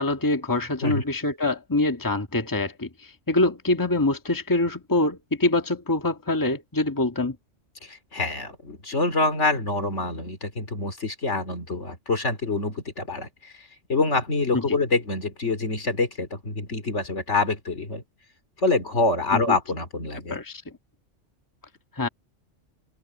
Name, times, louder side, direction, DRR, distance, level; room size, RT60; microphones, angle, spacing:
voice 1, 0.0-2.9 3.3-7.4 14.5-14.6 19.3-19.6 20.3-20.6 22.0-22.1, left 2 dB, 15° left, 1.7 m, -24 dB
voice 2, 7.8-18.0 18.6-20.4, left 3 dB, 70° left, 3.3 m, -26 dB
omnidirectional pair, 1.3 m